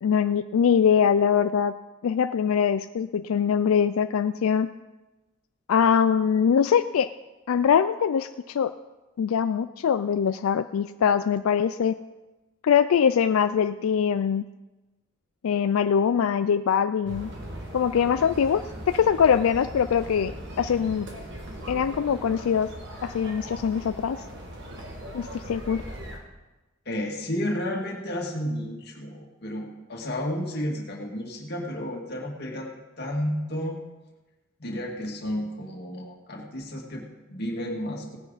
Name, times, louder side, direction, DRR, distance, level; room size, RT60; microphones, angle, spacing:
voice 1, 0.0-1.7 2.0-4.7 5.7-7.1 7.5-8.7 9.2-12.0 12.6-14.4 15.4-17.3 17.7-21.1 21.7-22.7 23.0-24.2 25.1-25.8, left 7 dB, 85° left, 11 dB, 0.4 m, -23 dB
sound 1, 17.1-26.2, right 1 dB, 55° right, 2.1 m, -39 dB
voice 2, 26.9-33.8 34.6-38.2, equal, 50° left, 0 dB, 2.2 m, -32 dB
17.5 x 9.8 x 4.1 m, 1.1 s
head